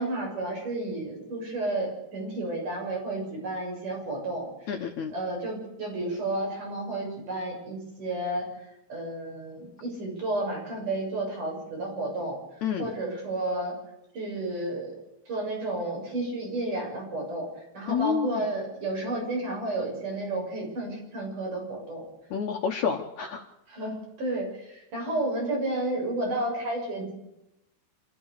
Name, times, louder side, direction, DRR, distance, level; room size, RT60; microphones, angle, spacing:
voice 1, 0.0-4.7 5.1-8.5 8.9-12.4 12.8-13.7 14.1-14.9 15.3-22.1 23.7-27.2, right 2 dB, 55° right, -1 dB, 8.5 m, -32 dB
voice 2, 4.7-5.1 12.6-12.9 17.9-18.4 22.3-23.5, left 7 dB, 60° left, 4 dB, 2.1 m, -29 dB
26.5 x 14.5 x 6.7 m, 0.88 s
omnidirectional pair, 4.4 m